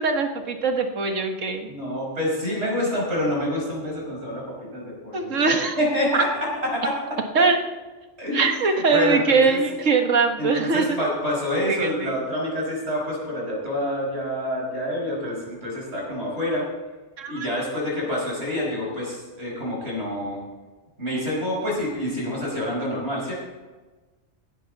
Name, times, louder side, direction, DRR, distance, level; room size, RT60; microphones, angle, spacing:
voice 1, 0.0-1.7 5.1-5.8 6.1-6.2 7.4-7.6 8.3-10.9 11.7-12.1 17.2-17.5, right 4 dB, 90° right, 5 dB, 1.8 m, -22 dB
voice 2, 1.7-7.0 8.2-9.6 10.4-16.7 17.3-20.4 21.0-23.3, left 1 dB, 60° right, -3 dB, 5.9 m, -27 dB
16.5 x 12.5 x 4.1 m, 1.3 s
omnidirectional pair, 1.3 m